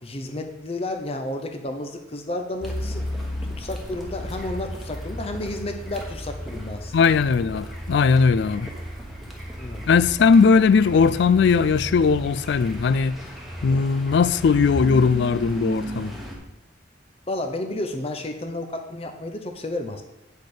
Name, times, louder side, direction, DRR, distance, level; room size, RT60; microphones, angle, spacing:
voice 1, 0.0-3.0 3.6-7.1 8.6-8.7 9.6-9.9 13.7-13.8 17.3-20.0, left 1 dB, 30° left, 0.7 m, -32 dB
Car, 2.6-16.4, equal, ahead, 1.2 m, -34 dB
voice 2, 6.9-8.7 9.9-13.2 13.6-16.1, left 5 dB, 60° left, 0.3 m, -19 dB
8.5 x 6.4 x 4.9 m
head